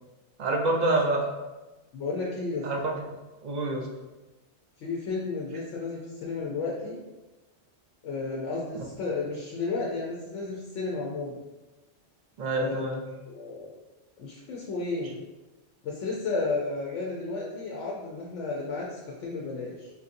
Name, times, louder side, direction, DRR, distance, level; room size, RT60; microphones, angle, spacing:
voice 1, 0.4-1.3 2.6-2.8 3.4-3.9 12.4-13.0, right 2 dB, 65° right, 1 dB, 0.4 m, -26 dB
voice 2, 1.9-2.7 4.8-7.0 8.0-11.4 12.5-12.9 13.3-13.7 14.2-15.2 15.8-19.9, left 3 dB, 80° left, -3 dB, 0.9 m, -32 dB
4.3 x 2.6 x 2.5 m, 1.1 s
omnidirectional pair, 1.2 m